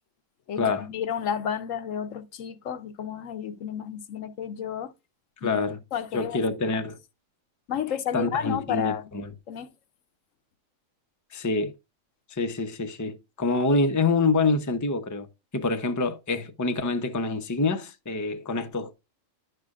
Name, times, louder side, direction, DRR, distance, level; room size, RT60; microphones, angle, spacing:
voice 1, 0.5-4.9 5.4-5.6 5.9-6.4 7.7-9.0 9.5-9.7, left 8 dB, 75° left, 1.1 m, -31 dB
voice 2, 5.4-5.8 6.1-7.0 8.1-9.3 11.3-11.7 12.3-15.3 15.5-19.0, left 3 dB, 20° left, 0.6 m, -26 dB
10.5 x 6.6 x 2.4 m
omnidirectional pair, 1.4 m